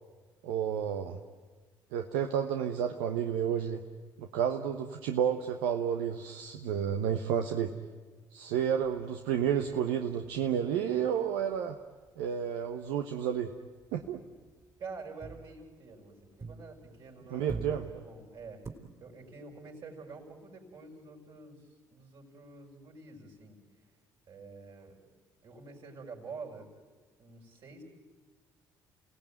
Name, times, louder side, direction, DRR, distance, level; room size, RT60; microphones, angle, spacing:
voice 1, 0.4-1.2 1.9-3.8 4.2-7.7 8.3-11.8 12.2-13.5 13.9-14.2 17.3-17.9, right 8 dB, 80° right, 5 dB, 1.1 m, -31 dB
sound 1, 9.1-12.3 12.6-12.9 13.2-17.0 17.3-18.7, right 4 dB, 35° right, 3.8 m, -47 dB
voice 2, 14.8-17.6 17.9-18.6 19.0-23.6 24.3-25.0 25.4-26.7 27.2-27.8, right 4 dB, 55° right, 0 dB, 6.1 m, -47 dB
29.5 x 18.0 x 9.2 m, 1.4 s
hypercardioid pair, 55°, 10 cm